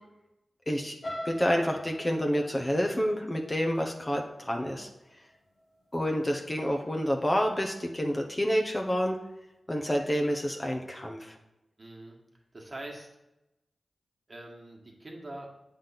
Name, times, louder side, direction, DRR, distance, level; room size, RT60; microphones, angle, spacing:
sound 1, 1.0-5.0 5.5-5.8 6.1-6.2, equal, 50° left, 1.3 m, -42 dB
voice 1, 1.2-4.9 5.9-9.2 9.7-11.3, equal, 25° left, 2 dB, 1.0 m, -28 dB
voice 2, 11.8-12.2 12.5-13.1 14.3-15.5, right 1 dB, 40° right, 0 dB, 1.7 m, -43 dB
7.6 x 3.6 x 5.8 m, 0.93 s
cardioid pair, 40°, 0 cm